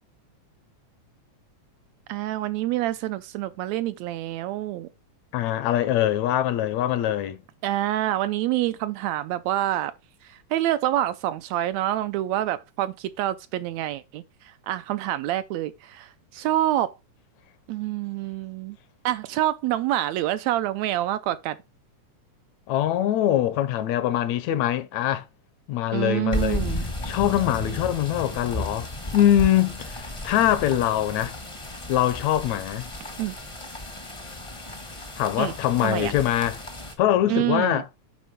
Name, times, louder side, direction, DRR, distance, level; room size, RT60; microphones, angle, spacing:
voice 1, 2.1-4.9 7.6-9.9 10.2-16.9 17.7-18.8 19.0-21.6 25.9-26.8 33.2-33.4 35.4-35.5 35.8-36.1 37.3-37.8, right 14 dB, 80° right, 1.7 m, -27 dB
voice 2, 5.3-7.4 22.7-25.2 25.7-26.6 27.0-31.3 31.9-32.9 35.2-36.6 37.0-37.8, left 12 dB, 75° left, 2.0 m, -23 dB
sound 1, 26.3-36.9, left 1 dB, 25° left, 0.6 m, -34 dB
9.4 x 4.3 x 5.1 m
omnidirectional pair, 3.4 m